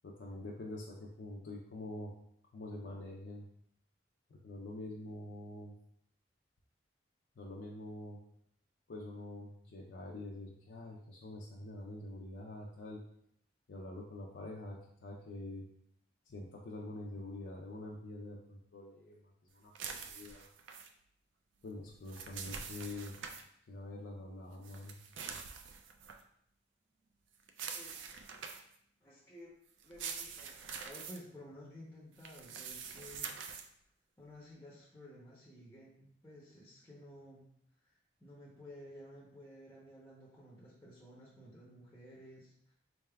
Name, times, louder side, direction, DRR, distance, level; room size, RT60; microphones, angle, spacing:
voice 1, 0.0-2.1 2.5-3.5 4.3-5.7 7.4-8.2 8.9-13.0 13.7-15.7 16.3-20.5 21.6-23.1 23.7-25.0, left 1 dB, 75° left, -3 dB, 0.5 m, -46 dB
sound 1, 19.8-20.9 21.9-23.4 24.6-26.2 27.5-28.8 29.8-31.2 32.2-33.7, right 6 dB, 85° right, 0.4 m, -45 dB
voice 2, 27.7-28.2 29.0-29.5 29.8-33.3 34.2-37.5 37.8-42.7, left 1 dB, 15° left, -5 dB, 0.6 m, -54 dB
4.1 x 3.4 x 2.2 m, 0.70 s
head